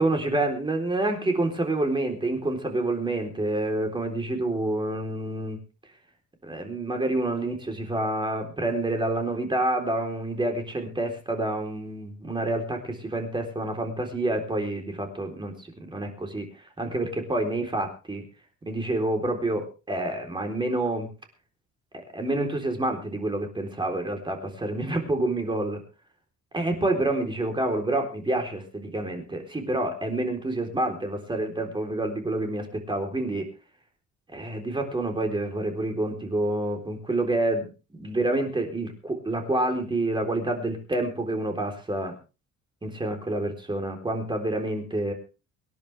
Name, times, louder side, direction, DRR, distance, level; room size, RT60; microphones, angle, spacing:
voice 1, 0.0-5.6 6.4-18.3 18.7-21.1 22.1-25.8 26.5-33.5 34.3-42.2 42.8-45.1, right 2 dB, 15° right, 3 dB, 3.9 m, -28 dB
25.0 x 10.5 x 3.5 m, 0.33 s
cardioid pair, 145°, 30 cm